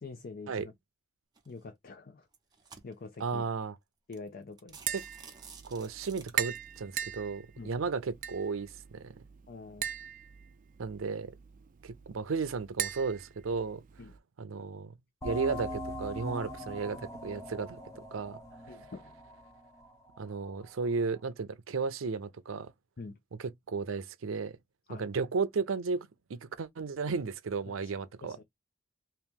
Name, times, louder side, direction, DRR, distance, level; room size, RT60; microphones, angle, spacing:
voice 1, 0.0-0.7 1.5-2.3 2.8-3.5 4.1-4.8 7.6-7.7 9.5-9.9 14.0-14.1 18.7-19.2 23.0-23.2 24.9-25.1 27.7-27.9 28.2-28.4, left 3 dB, 50° left, 0.5 m, -46 dB
sound 1, 1.3-1.6 2.2-3.2 3.8-3.9 4.1-4.3 4.6-6.8, right 5 dB, 20° right, 0.9 m, -52 dB
voice 2, 3.2-3.7 5.6-9.1 10.8-11.3 11.8-13.8 14.4-14.9 15.2-17.8 18.1-18.4 20.2-22.7 23.7-24.6 24.9-28.4, right 4 dB, 90° right, 0.5 m, -34 dB
Tap, 4.7-14.2, right 10 dB, 40° right, 0.4 m, -40 dB
sound 2, 15.2-20.5, equal, 15° left, 0.9 m, -41 dB
2.9 x 2.9 x 3.5 m
head